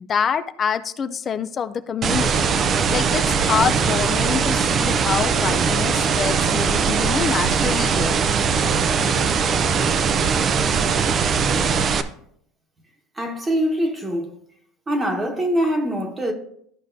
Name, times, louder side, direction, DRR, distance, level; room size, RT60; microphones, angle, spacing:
voice 1, 0.0-2.5 2.9-8.2, left 7 dB, 30° left, 0.4 m, -26 dB
sound 1, 2.0-12.0, right 6 dB, 35° right, 0.5 m, -20 dB
voice 2, 13.2-14.4 14.9-16.3, equal, 15° right, 1.3 m, -23 dB
13.0 x 5.1 x 2.6 m
supercardioid pair, 130°, 0 cm